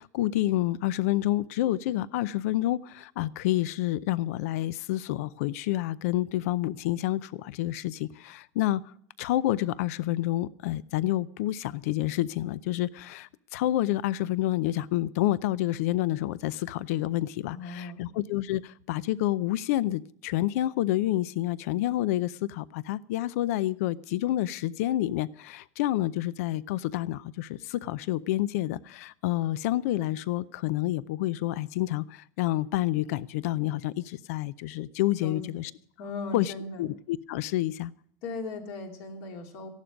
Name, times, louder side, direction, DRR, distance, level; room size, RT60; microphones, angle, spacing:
voice 1, 0.0-35.7 36.3-36.5 36.8-37.9, left 15 dB, 70° left, 18 dB, 0.5 m, -29 dB
voice 2, 17.5-18.1 35.2-35.7 36.0-36.9 38.2-39.7, left 3 dB, 55° left, 2 dB, 2.8 m, -38 dB
15.5 x 11.5 x 5.1 m, 0.63 s
cardioid pair, 180°, 8 cm